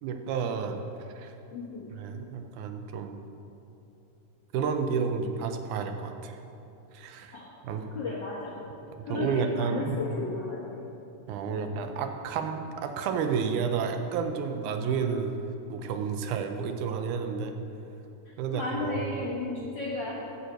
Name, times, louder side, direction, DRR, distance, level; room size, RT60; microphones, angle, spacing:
voice 1, 0.0-0.8 1.2-1.3 2.0-3.2 4.5-6.4 6.9-7.4 7.6-7.9 9.1-10.0 11.3-15.3 15.7-17.5 18.4-19.3, right 6 dB, 80° right, 6 dB, 2.1 m, -31 dB
voice 2, 1.5-1.9 7.3-7.5 7.9-8.7 9.0-10.8 11.5-11.8 15.0-15.2 18.2-20.4, left 3 dB, 60° left, -6 dB, 1.2 m, -35 dB
9.9 x 5.5 x 7.8 m, 2.8 s
omnidirectional pair, 3.6 m